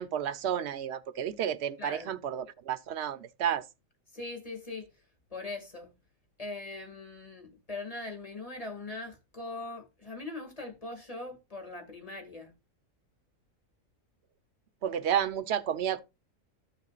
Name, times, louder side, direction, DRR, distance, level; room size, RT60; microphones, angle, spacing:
voice 1, 0.0-3.6 14.8-16.0, right 9 dB, 55° right, 0.9 m, -31 dB
voice 2, 1.8-2.1 4.1-4.9 5.3-5.9 6.4-12.5, left 2 dB, 25° left, 2.2 m, -41 dB
13.5 x 6.8 x 2.4 m
omnidirectional pair, 1.4 m